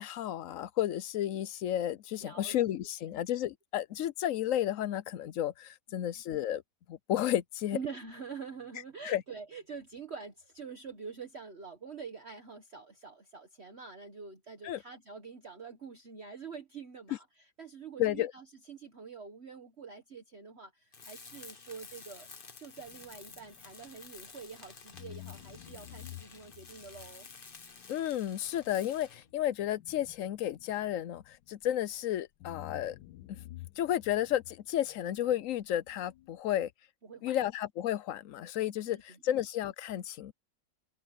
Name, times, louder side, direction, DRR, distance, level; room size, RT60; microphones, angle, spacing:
voice 1, 0.0-6.6 6.9-7.8 9.0-9.2 14.6-14.8 18.0-18.3 27.9-33.0 33.3-33.4 33.8-36.7 37.2-40.3, left 12 dB, 65° left, 0.8 m, -32 dB
voice 2, 2.2-2.6 5.9-6.2 7.7-22.3 22.6-27.3 37.0-37.5 38.9-39.2, right 5 dB, 40° right, 1.6 m, -46 dB
Tools, 20.9-29.3, left 4 dB, 35° left, 1.4 m, -52 dB
sound 1, 22.8-24.5 24.9-32.0 32.4-36.4, left 17 dB, 90° left, 1.3 m, -52 dB
omnidirectional pair, 1.9 m